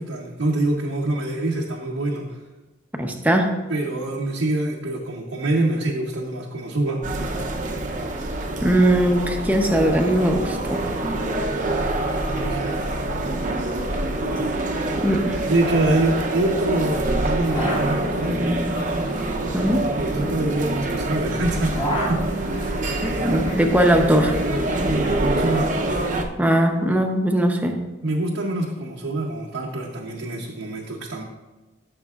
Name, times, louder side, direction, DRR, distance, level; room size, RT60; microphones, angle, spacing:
voice 1, 0.0-2.3 3.7-7.1 12.3-12.9 15.5-18.4 19.9-22.2 24.8-25.7 28.0-31.2, right 2 dB, 80° right, -2 dB, 0.9 m, -25 dB
voice 2, 3.0-3.5 8.6-10.8 15.0-15.4 19.5-19.8 23.2-24.4 26.4-27.8, right 1 dB, 10° right, 2 dB, 0.7 m, -19 dB
sound 1, 7.0-26.2, right 2 dB, 40° right, 0.7 m, -25 dB
sound 2, 14.3-14.4 14.7-15.0 15.3-16.5 17.2-21.2 21.5-23.7 24.0-24.9, equal, 25° left, 1.5 m, -33 dB
13.5 x 6.7 x 2.4 m, 1.2 s
head